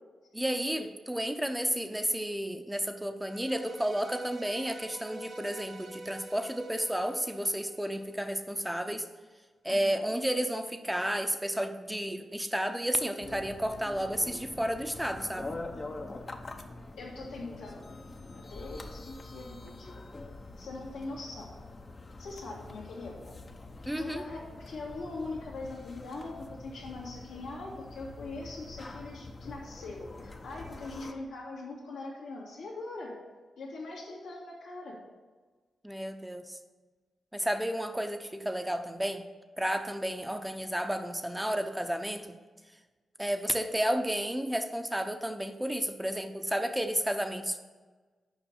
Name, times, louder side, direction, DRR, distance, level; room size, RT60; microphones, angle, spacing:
voice 1, 0.3-9.1 9.6-15.6 23.8-24.2 35.8-36.6 37.3-39.2 39.6-42.3 43.2-47.6, equal, 5° right, 7 dB, 0.9 m, -32 dB
sound 1, 3.2-8.5, right 2 dB, 65° right, 1.0 m, -48 dB
voice 2, 9.7-10.1 17.0-18.0 18.2-20.0 20.6-21.5 22.2-23.3 24.0-33.1 33.6-35.0, left 3 dB, 90° left, -5 dB, 2.3 m, -42 dB
sound 2, 13.2-31.1, left 2 dB, 45° left, 0.9 m, -45 dB
7.2 x 5.2 x 7.2 m, 1.4 s
supercardioid pair, 45°, 0 cm